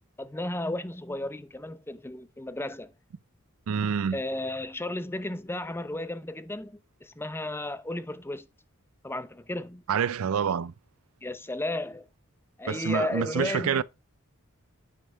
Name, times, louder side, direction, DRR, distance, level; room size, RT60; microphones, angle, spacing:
voice 1, 0.2-2.9 4.1-8.5 9.0-9.8 11.2-12.1 12.6-13.8, left 1 dB, 10° left, 0.7 m, -34 dB
voice 2, 3.7-4.2 9.9-10.7 12.7-13.8, right 7 dB, 75° right, 0.4 m, -27 dB
9.7 x 5.5 x 4.5 m
head